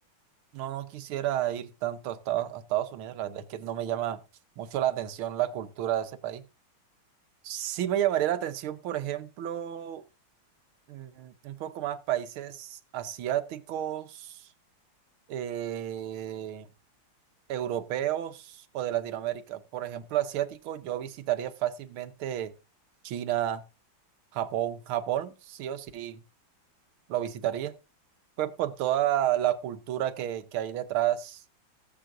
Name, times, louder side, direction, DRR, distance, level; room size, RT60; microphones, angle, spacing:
voice 1, 0.5-4.2 4.6-6.4 7.4-10.0 10.9-14.5 15.3-16.7 17.5-22.5 23.0-23.6 24.3-26.2 27.1-27.8 28.4-31.4, right 12 dB, 85° right, 1.7 m, -31 dB
18.0 x 7.9 x 2.6 m
omnidirectional pair, 2.2 m